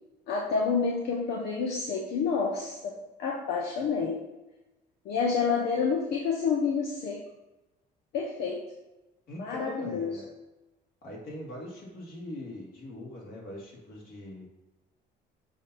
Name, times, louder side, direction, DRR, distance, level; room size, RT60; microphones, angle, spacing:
voice 1, 0.3-4.2 5.0-7.2 8.1-8.6 9.4-10.2, left 5 dB, 75° left, -1 dB, 0.9 m, -29 dB
voice 2, 9.3-10.3 11.0-14.5, left 1 dB, 60° left, -3 dB, 2.3 m, -41 dB
7.2 x 2.9 x 5.5 m, 1.0 s
cardioid pair, 110°, 17 cm